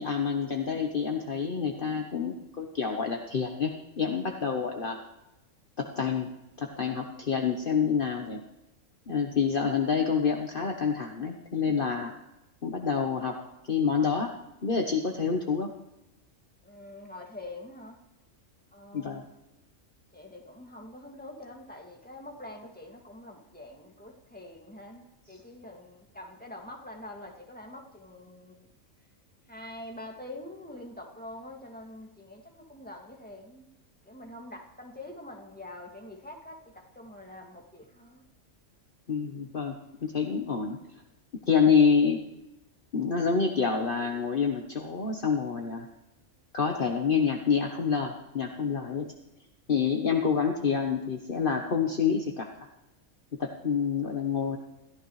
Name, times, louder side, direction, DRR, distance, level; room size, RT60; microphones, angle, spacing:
voice 1, 0.0-5.0 5.8-6.3 6.6-8.4 9.1-12.1 12.6-13.4 13.7-14.3 14.6-15.7 18.9-19.2 39.1-40.8 41.5-42.2 42.9-45.9 46.5-49.1 49.7-52.5 53.4-54.6, left 6 dB, 45° left, 2 dB, 1.3 m, -27 dB
voice 2, 16.6-18.0 18.7-19.4 20.1-28.7 29.5-33.7 34.0-38.2, left 1 dB, 5° left, 0 dB, 2.2 m, -45 dB
27.0 x 14.5 x 3.2 m, 0.93 s
omnidirectional pair, 1.3 m